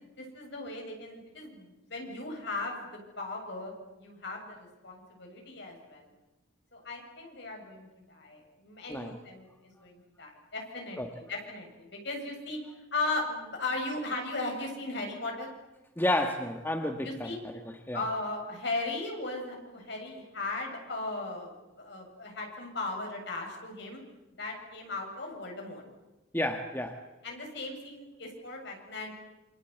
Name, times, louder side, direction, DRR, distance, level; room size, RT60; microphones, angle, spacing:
voice 1, 0.0-3.7 4.0-6.1 6.7-12.6 12.9-15.5 17.0-17.4 17.9-21.5 21.8-24.0 24.4-25.8 27.2-29.1, left 2 dB, 55° left, 1 dB, 7.4 m, -37 dB
voice 2, 16.0-17.3 17.9-18.0 26.3-27.0, left 1 dB, 10° left, 4 dB, 1.5 m, -30 dB
27.5 x 25.5 x 8.2 m, 1.0 s
head